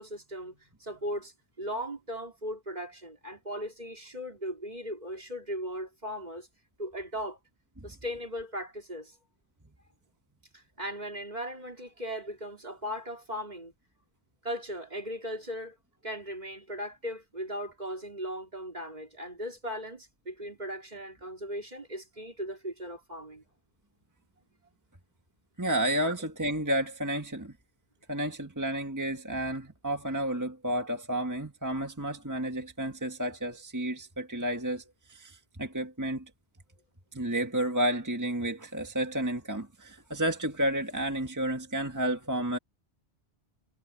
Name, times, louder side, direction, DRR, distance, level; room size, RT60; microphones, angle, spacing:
voice 1, 0.0-6.5 6.8-7.4 7.8-9.2 10.5-13.7 14.4-15.8 16.0-23.4 26.1-26.2, equal, 40° right, 3.8 m, -38 dB
voice 2, 25.6-27.5 28.1-34.8 35.1-36.2 37.1-42.6, right 1 dB, 15° right, 1.7 m, -31 dB
omnidirectional pair, 1.1 m